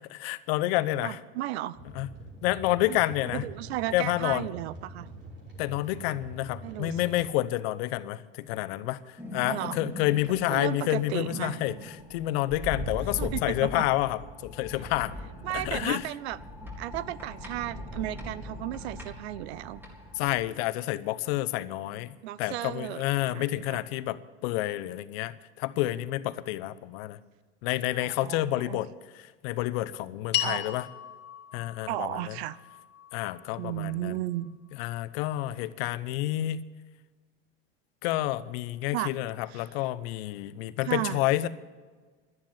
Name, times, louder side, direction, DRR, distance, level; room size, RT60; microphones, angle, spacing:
voice 1, 0.1-1.2 1.9-2.1 2.4-3.5 3.9-4.5 5.6-15.2 15.5-16.1 20.2-27.2 27.6-28.9 29.4-30.9 31.5-32.4 33.1-34.1 34.8-36.6 38.0-41.5, left 15 dB, 65° left, 15 dB, 0.9 m, -29 dB
voice 2, 1.0-1.8 2.9-3.0 3.3-5.1 6.6-7.2 9.4-9.9 10.3-11.6 13.2-13.9 15.4-16.4 16.8-19.8 22.2-23.8 27.9-28.4 28.7-28.8 30.4-30.8 31.9-32.6 33.5-34.6 38.9-39.1 39.5-39.7 40.8-41.2, right 15 dB, 75° right, 20 dB, 0.7 m, -34 dB
sound 1, 1.7-7.2, right 2 dB, 35° right, 6.1 m, -45 dB
sound 2, 9.2-20.4, equal, 5° right, 4.0 m, -40 dB
sound 3, 30.3-34.8, left 12 dB, 30° left, 2.1 m, -37 dB
12.5 x 10.5 x 8.9 m, 1.4 s
hypercardioid pair, 100°, 32 cm